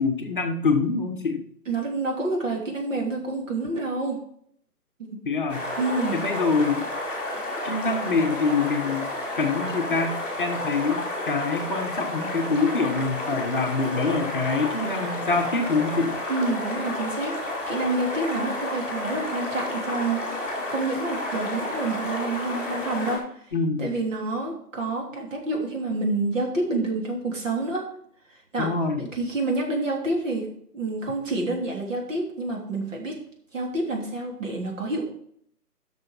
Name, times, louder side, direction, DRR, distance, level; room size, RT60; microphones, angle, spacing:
voice 1, 0.0-1.4 5.2-5.6 6.1-6.9 7.6-9.1 9.4-16.2 23.5-23.9 28.6-29.0, left 4 dB, 35° left, 3 dB, 1.0 m, -25 dB
voice 2, 1.7-4.2 5.0-5.2 5.8-6.2 16.3-23.4 23.8-27.9 28.5-28.7 29.0-30.5 30.7-33.1 33.5-35.1, right 2 dB, 50° right, 0 dB, 3.2 m, -28 dB
sound 1, 5.5-23.2, left 1 dB, 5° right, 2.0 m, -31 dB
7.9 x 6.3 x 6.0 m, 0.66 s
figure-of-eight pair, 150°, 47 cm